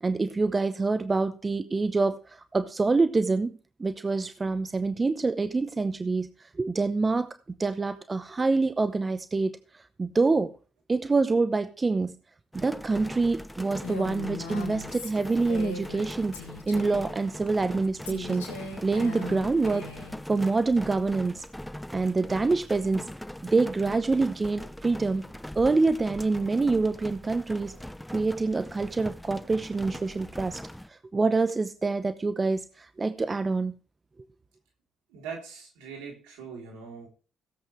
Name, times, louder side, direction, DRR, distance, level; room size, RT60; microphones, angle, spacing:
voice 1, 0.0-3.5 3.8-6.3 6.6-10.5 10.9-12.2 12.5-16.3 16.7-18.5 18.8-19.8 20.3-21.4 21.9-23.1 23.4-25.2 25.5-27.7 28.1-30.6 30.9-33.8, right 3 dB, 30° right, 0.9 m, -26 dB
sound 1, 12.5-30.9, left 1 dB, 5° left, 0.7 m, -41 dB
Female speech woman speaking, 13.8-16.1 16.3-17.1 18.0-20.2, left 5 dB, 85° left, 3.2 m, -39 dB
voice 2, 35.1-37.1, right 6 dB, 75° right, 3.5 m, -41 dB
17.0 x 8.1 x 3.2 m
hypercardioid pair, 45°, 0 cm